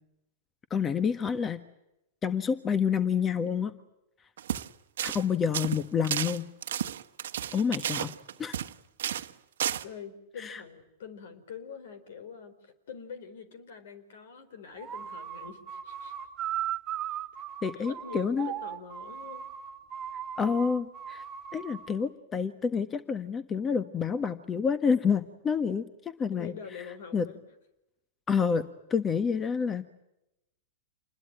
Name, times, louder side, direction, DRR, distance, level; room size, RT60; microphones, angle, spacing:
voice 1, 0.7-1.6 2.2-3.7 5.0-6.5 7.5-8.1 8.4-8.6 10.4-10.6 17.6-18.5 20.4-21.2 21.5-26.5 27.1-27.3 28.3-28.6 28.9-29.9, left 6 dB, 25° left, 12 dB, 1.5 m, -28 dB
sound 1, 4.4-4.7 5.0-5.2 5.5-8.7 9.0-9.3 9.6-9.8, right 10 dB, 75° right, 1.2 m, -32 dB
voice 2, 9.8-16.1 17.7-19.4 26.3-27.4, left 6 dB, 70° left, 13 dB, 4.6 m, -45 dB
sound 2, 14.8-22.0, right 10 dB, 30° right, 2.1 m, -38 dB
28.0 x 21.0 x 9.0 m, 0.88 s
hypercardioid pair, 105°, 0 cm